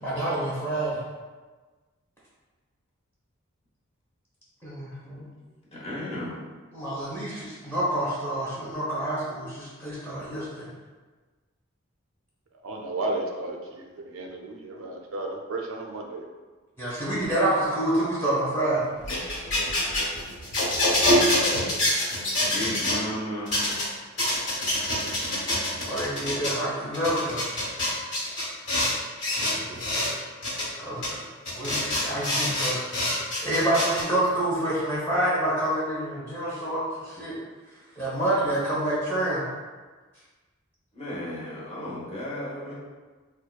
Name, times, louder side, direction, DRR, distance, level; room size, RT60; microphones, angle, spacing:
voice 1, 0.0-1.0 4.6-5.2 6.7-10.7 16.8-18.9 19.7-19.8 25.8-27.4 29.2-29.8 30.8-31.2 31.6-33.1 33.4-37.3 38.0-39.4, right 1 dB, 10° left, -8 dB, 0.7 m, -28 dB
voice 2, 5.8-6.4 22.5-23.5 40.9-42.7, left 1 dB, 30° left, -7 dB, 1.0 m, -33 dB
voice 3, 12.6-16.2, right 2 dB, 75° right, 1 dB, 0.4 m, -33 dB
sound 1, 19.0-23.0 23.5-23.8 24.2-26.5 26.9-28.9 29.2-30.1 30.4-30.6 31.0-31.1 31.5-34.0, left 1 dB, 60° left, 1.5 m, -25 dB
4.4 x 2.2 x 2.2 m, 1.3 s
head